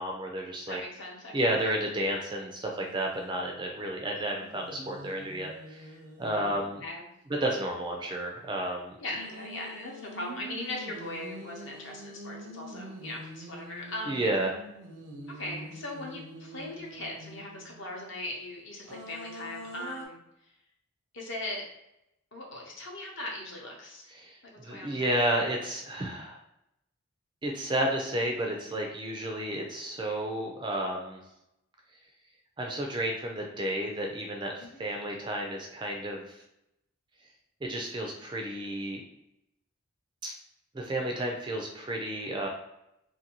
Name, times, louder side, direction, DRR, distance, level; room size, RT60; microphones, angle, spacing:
voice 1, 0.0-0.8 1.3-5.9 6.2-6.8 7.4-9.0 14.1-14.5 24.2-26.4 27.4-31.2 32.6-36.2 37.6-39.0 40.2-40.3 40.7-42.5, right 1 dB, 20° right, 1 dB, 0.3 m, -31 dB
voice 2, 0.7-1.6 6.3-7.0 9.0-14.3 15.3-20.2 21.1-21.7 22.3-24.1 24.4-25.1 34.6-34.8, left 1 dB, 55° left, -1 dB, 0.7 m, -39 dB
sound 1, 2.8-3.4 4.2-6.9 9.1-17.9 18.9-20.1, right 1 dB, 80° right, 0.6 m, -45 dB
2.6 x 2.6 x 2.8 m, 0.85 s
head